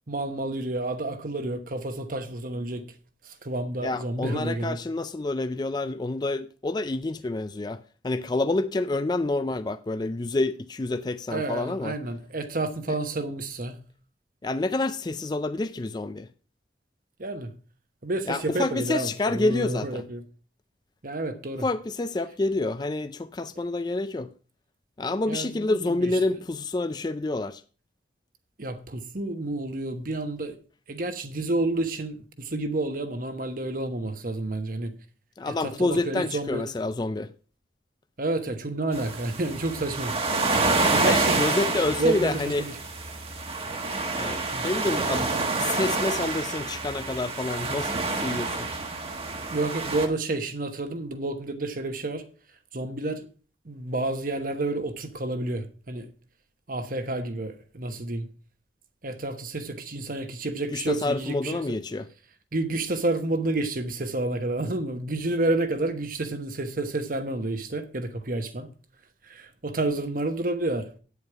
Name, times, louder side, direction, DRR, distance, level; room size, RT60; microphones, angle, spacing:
voice 1, 0.1-2.8 3.2-4.8 11.3-13.8 17.2-17.5 18.0-20.2 21.0-21.7 25.3-26.1 28.6-30.6 30.9-34.9 35.5-36.6 38.2-40.1 40.7-41.5 41.9-42.8 44.5-44.6 49.5-52.2 52.7-53.3 53.6-56.1 56.7-58.3 59.0-61.6 62.5-68.7 69.2-70.9, right 2 dB, 50° right, 1.1 m, -30 dB
voice 2, 3.8-11.9 12.9-13.0 14.4-16.3 18.3-20.0 21.6-24.3 25.0-27.6 35.4-37.3 41.0-42.7 44.2-48.7 60.7-62.1, left 2 dB, 20° left, 0.4 m, -28 dB
sound 1, 38.9-50.1, right 3 dB, 30° right, 1.3 m, -28 dB
9.1 x 8.3 x 4.7 m
head